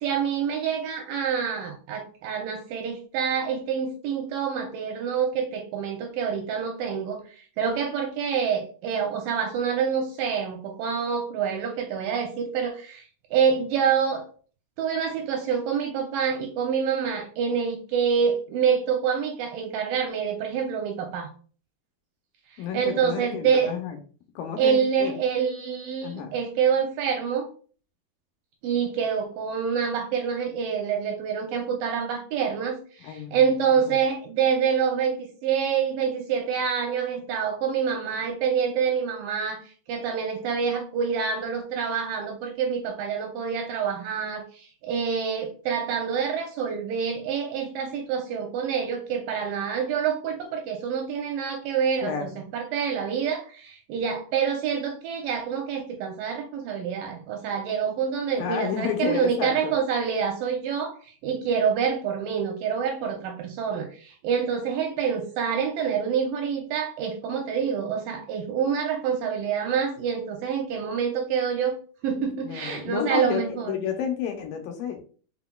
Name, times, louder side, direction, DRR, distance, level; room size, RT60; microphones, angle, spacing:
voice 1, 0.0-14.2 14.8-21.3 22.7-23.7 24.6-27.5 28.6-39.6 39.9-52.3 52.5-71.8 72.0-73.8, right 7 dB, 80° right, 2.1 m, -27 dB
voice 2, 22.6-24.0 24.4-25.1 26.0-26.3 33.0-34.0 52.0-52.4 58.4-59.7 72.4-75.0, left 8 dB, 80° left, 2.2 m, -31 dB
5.6 x 4.0 x 2.2 m
omnidirectional pair, 4.4 m